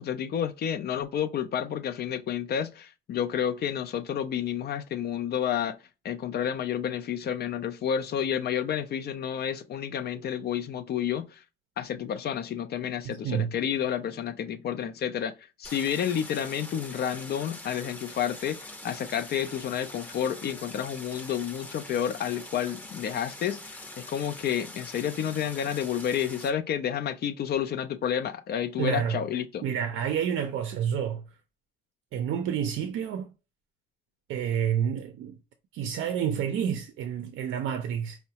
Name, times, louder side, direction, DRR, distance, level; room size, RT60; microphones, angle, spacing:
voice 1, 0.0-5.8 6.0-11.4 11.8-29.6, left 9 dB, 55° left, 0.4 m, -30 dB
voice 2, 13.0-13.5 28.8-29.2 29.6-31.2 32.1-33.3 34.3-35.4 35.7-38.2, right 8 dB, 80° right, 0.5 m, -29 dB
Stream, 15.6-26.5, left 1 dB, 10° left, 0.6 m, -44 dB
4.5 x 2.1 x 2.8 m
cardioid pair, 90°, 20 cm